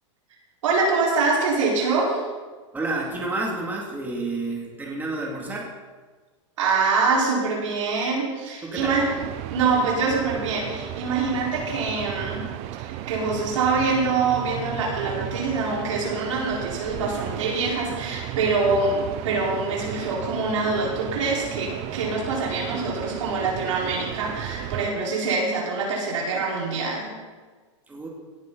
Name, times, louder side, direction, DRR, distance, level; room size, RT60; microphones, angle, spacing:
voice 1, 0.6-2.2 6.6-9.1 9.5-12.5 12.8-27.1, right 4 dB, 85° right, -3 dB, 4.4 m, -25 dB
voice 2, 2.7-5.7 8.6-9.0 27.9-28.1, right 2 dB, 10° right, -2 dB, 2.4 m, -30 dB
sound 1, 8.8-24.9, right 13 dB, 40° right, 0.7 m, -34 dB
17.5 x 8.8 x 4.0 m, 1.4 s
supercardioid pair, 135°, 16 cm